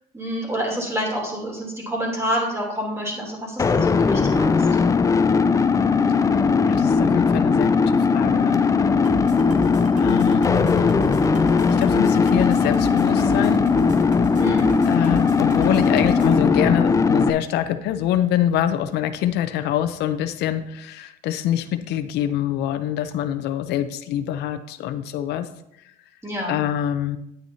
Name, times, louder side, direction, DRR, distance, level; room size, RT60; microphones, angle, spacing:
voice 1, 0.1-4.7 14.4-14.8 26.2-26.6, equal, 15° right, -2 dB, 3.1 m, -28 dB
sound 1, 3.6-17.3, left 5 dB, 20° left, 0.4 m, -19 dB
voice 2, 6.7-8.6 10.0-11.0 11.7-13.6 14.8-25.5 26.5-27.2, left 11 dB, 80° left, 10 dB, 0.6 m, -25 dB
sound 2, 9.0-16.4, right 4 dB, 45° right, 1.4 m, -36 dB
9.1 x 9.0 x 2.8 m, 0.80 s
cardioid pair, 110°, 17 cm